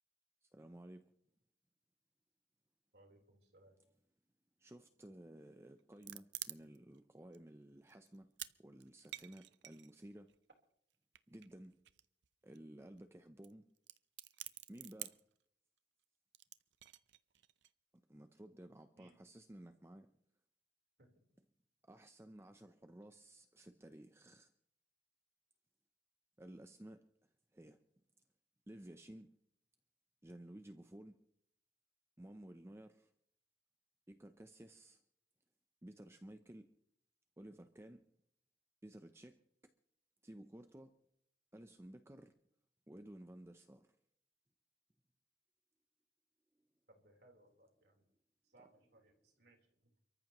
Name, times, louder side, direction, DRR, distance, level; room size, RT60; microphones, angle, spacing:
voice 1, 0.4-1.0 4.6-8.3 8.6-10.3 11.3-11.8 12.4-13.6 14.7-15.2 18.1-20.1 21.8-24.5 26.4-27.0 27.5-27.8 28.7-29.3 30.2-31.2 32.2-33.1 34.1-35.0 35.8-36.7 37.4-38.1 38.8-39.4 40.2-41.0 41.5-42.3 42.9-44.0, right 1 dB, 15° right, 0.6 m, -55 dB
voice 2, 2.9-3.8 19.0-19.2 21.0-21.1 46.9-48.0 48.4-49.8, right 1 dB, 65° right, 3.8 m, -66 dB
sound 1, 5.8-7.0 7.3-7.4 7.9-8.5 8.8-10.4 11.1-12.3 12.5-12.6 12.8-13.0 13.4-13.5 13.8-15.3 16.3-17.7, right 14 dB, 85° right, 0.6 m, -49 dB
29.5 x 14.0 x 3.0 m
head